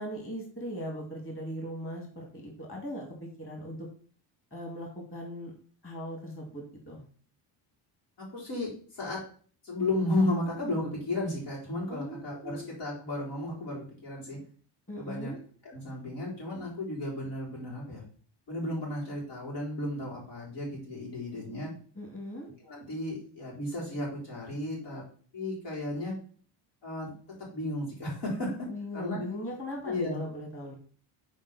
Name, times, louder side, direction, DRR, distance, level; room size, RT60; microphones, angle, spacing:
voice 1, 0.0-3.9 4.5-5.5 5.8-7.0 11.9-12.7 14.9-15.4 22.0-22.5 28.7-30.7, equal, 25° left, 1 dB, 2.5 m, -39 dB
voice 2, 8.2-9.2 9.6-14.4 15.0-15.3 15.6-18.0 18.5-21.7 22.6-25.0 25.3-26.2 26.8-27.1 27.5-28.7 28.9-29.2 29.8-30.2, left 1 dB, 85° left, -4 dB, 4.1 m, -33 dB
7.3 x 4.6 x 4.2 m, 0.43 s
cardioid pair, 120°, 49 cm